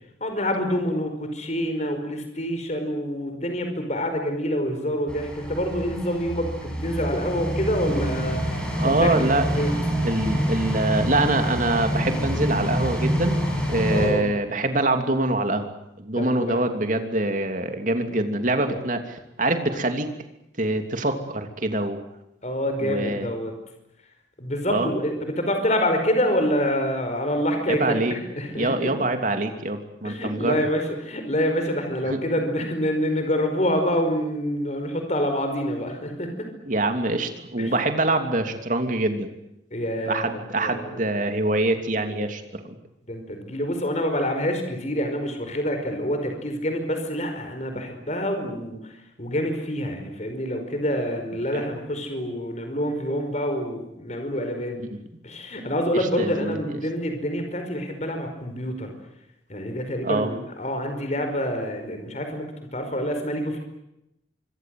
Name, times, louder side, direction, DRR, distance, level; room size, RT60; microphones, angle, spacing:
voice 1, 0.2-9.1 9.4-9.7 13.9-14.2 16.2-16.6 18.7-18.8 22.4-23.5 24.4-28.9 30.0-36.5 37.6-37.7 39.7-41.0 42.2-42.3 43.1-54.8 55.2-58.9 59.5-63.6, equal, 40° left, 5 dB, 5.1 m, -27 dB
sound 1, 5.1-14.1, equal, 5° left, 7.0 m, -26 dB
voice 2, 8.7-9.7 10.0-13.4 13.7-20.1 20.6-22.0 22.8-23.3 24.7-24.9 27.7-28.2 28.6-30.5 32.1-32.2 36.6-39.3 40.1-42.4 51.5-51.6 55.9-56.6 60.0-60.3, right 2 dB, 45° right, 6 dB, 3.0 m, -24 dB
25.5 x 25.0 x 7.9 m, 0.86 s
head